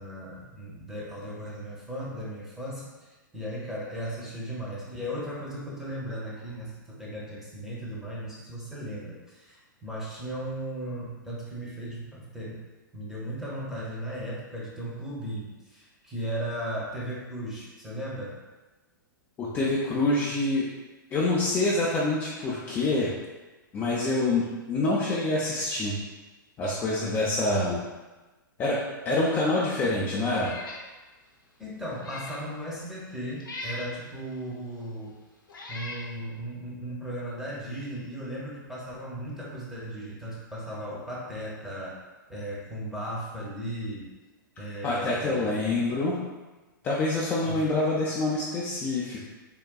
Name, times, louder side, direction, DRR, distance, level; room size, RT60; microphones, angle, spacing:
voice 1, 0.0-2.9 3.3-12.6 12.9-18.4 31.6-35.1 35.7-41.9 42.3-44.1 44.6-45.8 47.4-47.8, equal, 5° right, -6 dB, 0.8 m, -36 dB
voice 2, 19.4-20.7 21.1-23.1 23.7-26.0 26.6-27.8 28.6-28.8 29.0-30.5 44.8-46.2 46.8-49.2, left 2 dB, 20° left, -6 dB, 0.4 m, -26 dB
Meow, 30.3-30.8 31.3-31.4 31.9-32.4 33.4-33.9 34.8-34.9 35.5-36.1, left 2 dB, 80° left, 0.6 m, -39 dB
3.6 x 2.2 x 2.3 m, 1.2 s
figure-of-eight pair, 110°, 11 cm